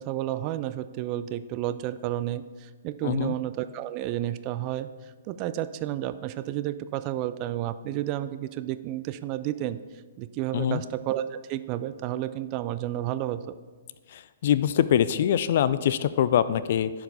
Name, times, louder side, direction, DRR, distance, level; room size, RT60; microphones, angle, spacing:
voice 1, 0.0-4.9 5.3-9.8 10.2-13.4, right 13 dB, 35° right, 13 dB, 0.3 m, -31 dB
voice 2, 3.0-3.4 10.5-10.8 14.1-16.9, left 10 dB, 50° left, 15 dB, 0.3 m, -24 dB
11.0 x 4.7 x 3.6 m, 1.4 s
figure-of-eight pair, 120°, 0 cm